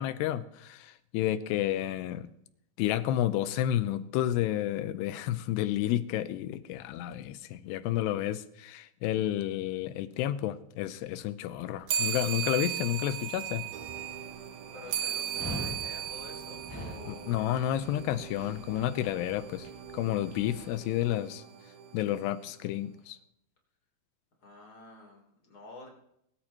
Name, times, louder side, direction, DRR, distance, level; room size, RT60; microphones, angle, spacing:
voice 1, 0.0-2.3 2.8-13.6 17.1-19.7 19.9-21.4 21.9-23.2, left 12 dB, 90° left, 13 dB, 2.8 m, -31 dB
sound 1, 11.9-17.7, right 9 dB, 70° right, 1.9 m, -35 dB
sound 2, 13.7-23.1, right 6 dB, 85° right, 3.7 m, -48 dB
voice 2, 14.7-17.6 24.4-25.9, left 2 dB, 30° left, 0 dB, 3.8 m, -50 dB
Dog, 15.3-20.7, left 1 dB, 5° left, 5.3 m, -43 dB
23.5 x 13.0 x 3.0 m, 0.76 s
omnidirectional pair, 4.7 m